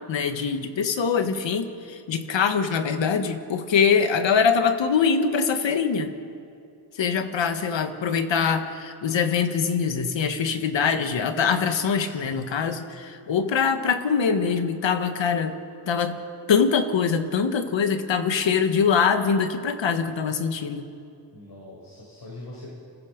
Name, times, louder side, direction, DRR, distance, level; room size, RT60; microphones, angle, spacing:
voice 1, 0.1-6.1 7.0-15.6 15.9-20.9, left 6 dB, 80° left, 8 dB, 1.6 m, -23 dB
voice 2, 12.0-12.4 21.3-22.7, left 2 dB, 55° left, -4 dB, 7.4 m, -42 dB
30.0 x 22.0 x 5.3 m, 2.5 s
cardioid pair, 60°, 44 cm